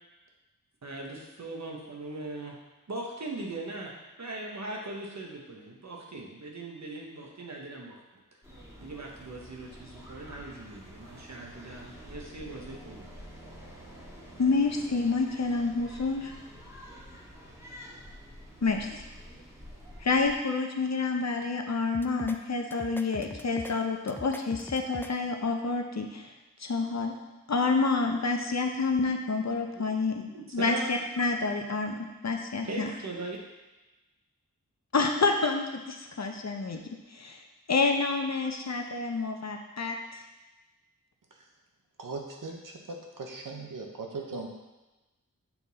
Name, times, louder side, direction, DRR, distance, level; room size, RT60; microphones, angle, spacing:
voice 1, 0.8-2.6 2.9-8.0 8.8-13.1 29.7-29.9 30.2-30.9 32.7-33.4, right 2 dB, 55° right, -1 dB, 1.2 m, -40 dB
sound 1, 8.4-20.4, equal, 10° right, 1.9 m, -48 dB
voice 2, 14.4-16.3 18.6-18.9 20.0-26.3 26.6-27.1 27.5-30.3 30.5-32.9 34.9-36.8 37.1-37.4 37.7-40.2, left 4 dB, 55° left, 3 dB, 0.7 m, -28 dB
sound 2, 21.9-22.4 22.7-23.7 24.1-25.1, left 1 dB, 5° left, 0.4 m, -42 dB
voice 3, 42.0-44.5, right 3 dB, 75° right, 1 dB, 1.0 m, -39 dB
7.1 x 3.9 x 4.1 m, 1.1 s
wide cardioid pair, 70°, 33 cm